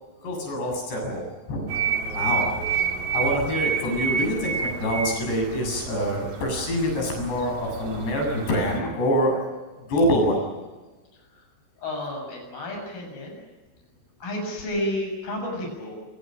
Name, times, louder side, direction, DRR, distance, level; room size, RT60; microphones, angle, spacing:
voice 1, 0.2-1.7 2.1-2.5 3.1-9.4 9.9-10.4, equal, 85° left, 1 dB, 9.8 m, -25 dB
sound 1, 1.7-8.8, right 6 dB, 40° right, 3.5 m, -29 dB
voice 2, 11.8-13.4 14.2-16.0, left 1 dB, 60° left, 1 dB, 9.1 m, -31 dB
28.5 x 27.0 x 6.5 m, 1.2 s
omnidirectional pair, 4.8 m